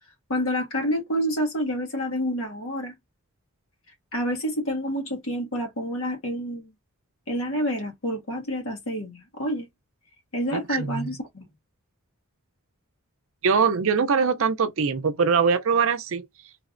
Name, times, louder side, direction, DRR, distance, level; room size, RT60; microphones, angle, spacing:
voice 1, 0.3-2.9 4.1-6.7 7.3-9.7 10.3-11.4, equal, 70° left, 1.4 m, -28 dB
voice 2, 10.5-11.1 13.4-16.2, right 5 dB, 60° right, 0.5 m, -22 dB
3.4 x 3.1 x 2.5 m
head